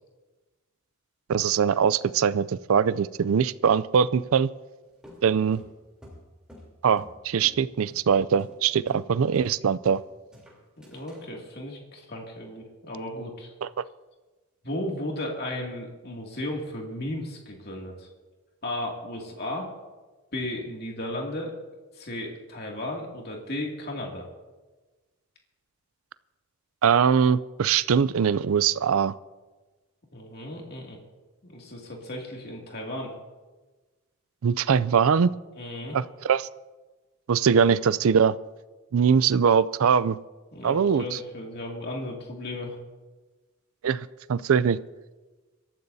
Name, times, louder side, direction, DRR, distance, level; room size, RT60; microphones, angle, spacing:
voice 1, 1.3-4.5 5.2-5.6 6.8-10.0 13.6-13.7 26.8-29.1 34.4-35.3 35.9-36.5 37.3-38.4 38.9-40.2 40.6-41.2 43.8-44.8, right 7 dB, 70° right, 17 dB, 0.4 m, -22 dB
sound 1, 5.0-7.2 7.4-7.6 7.9-8.1 8.4-8.6 8.9-9.1 9.3-10.0 10.3-11.2, left 1 dB, 5° right, 3.3 m, -48 dB
voice 2, 10.8-13.5 14.6-18.1 18.6-19.7 20.3-21.6 21.9-24.3 30.1-31.0 31.4-33.1 35.5-36.0 40.5-42.8, left 1 dB, 45° left, 0 dB, 2.4 m, -35 dB
26.0 x 13.5 x 2.7 m, 1.2 s
head